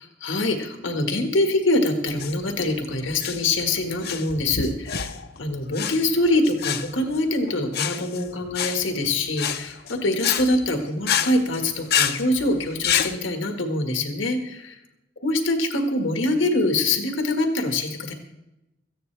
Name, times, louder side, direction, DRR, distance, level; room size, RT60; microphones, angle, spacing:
voice 1, 0.2-5.1 5.4-14.8 15.2-18.1, left 2 dB, 80° left, 5 dB, 1.8 m, -24 dB
sound 1, 2.1-13.1, left 8 dB, 55° left, 0.8 m, -28 dB
17.5 x 14.5 x 3.4 m, 0.93 s
head